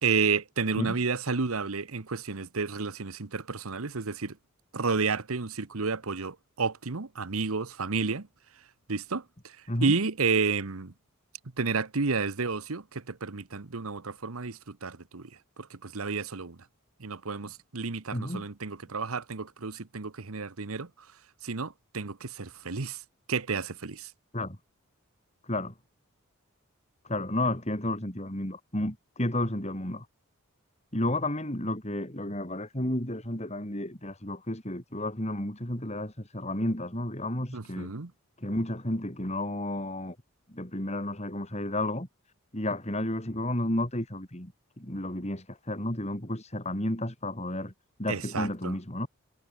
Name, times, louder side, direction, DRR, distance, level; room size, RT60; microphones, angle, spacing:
voice 1, 0.0-4.4 4.7-8.3 8.9-9.2 9.8-10.9 11.6-15.3 15.7-16.6 17.0-20.9 21.4-23.0 23.3-24.1 37.5-38.1 48.1-48.7, right 4 dB, 75° right, 1.1 m, -31 dB
voice 2, 18.1-18.5 24.3-24.6 25.4-25.7 27.0-30.1 30.9-37.9 38.4-40.2 40.5-42.1 42.5-44.5 44.8-47.7 48.0-49.1, left 1 dB, 30° left, 4.4 m, -32 dB
head